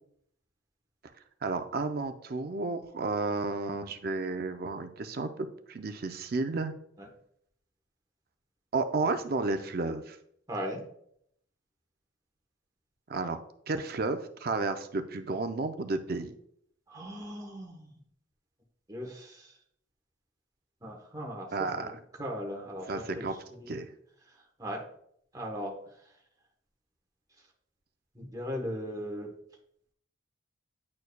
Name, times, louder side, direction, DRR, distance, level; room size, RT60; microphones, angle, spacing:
voice 1, 1.4-6.7 8.7-10.2 13.1-13.4 13.7-16.3 21.5-22.0 22.9-23.3 23.7-23.9, right 3 dB, 50° right, 8 dB, 0.5 m, -32 dB
voice 2, 10.5-10.8 16.9-17.9 18.9-19.5 20.8-21.5 21.8-23.2 23.5-23.8 24.6-24.8 25.3-25.7 28.1-29.3, equal, 20° right, -1 dB, 1.0 m, -38 dB
9.5 x 4.4 x 2.2 m, 0.70 s
head